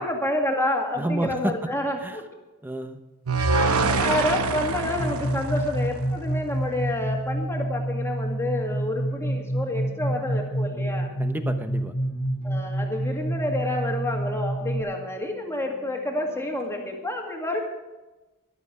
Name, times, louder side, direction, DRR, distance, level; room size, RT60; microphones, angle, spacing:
voice 1, 0.0-2.2 3.4-11.1 12.4-17.6, left 1 dB, 10° left, 1 dB, 2.0 m, -29 dB
voice 2, 1.0-1.7 2.0-2.2 2.6-3.0 11.2-11.9, right 1 dB, 10° right, 8 dB, 1.0 m, -30 dB
sound 1, 3.3-6.5, right 3 dB, 70° right, 1.0 m, -25 dB
sound 2, 5.0-14.8, right 1 dB, 75° left, 2.3 m, -28 dB
sound 3, 9.1-17.1, equal, 25° right, 5.6 m, -46 dB
14.0 x 12.0 x 5.0 m, 1.1 s
head